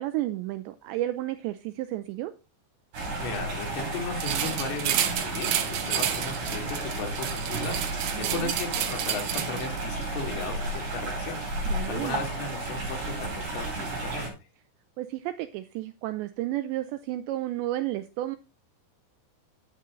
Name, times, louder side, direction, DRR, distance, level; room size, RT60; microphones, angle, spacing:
voice 1, 0.0-2.3 8.1-8.5 11.7-12.2 15.0-18.4, right 15 dB, 85° right, 11 dB, 2.5 m, -32 dB
sound 1, 2.9-14.3, right 2 dB, 45° right, 5.9 m, -33 dB
voice 2, 3.2-14.4, left 4 dB, 90° left, 3 dB, 5.0 m, -36 dB
sound 2, 4.2-9.8, right 10 dB, 70° right, 2.5 m, -30 dB
9.8 x 8.4 x 3.8 m, 0.27 s
omnidirectional pair, 5.7 m